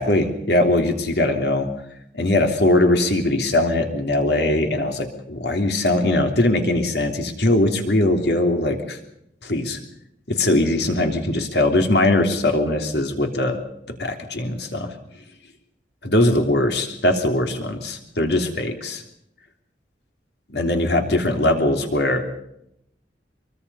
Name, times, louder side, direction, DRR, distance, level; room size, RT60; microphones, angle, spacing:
voice 1, 0.0-1.7 2.1-9.0 9.4-9.8 10.3-13.6 14.0-14.9 16.0-19.0 20.5-22.2, left 1 dB, 70° left, 4 dB, 3.3 m, -20 dB
24.0 x 23.5 x 5.6 m, 0.79 s
head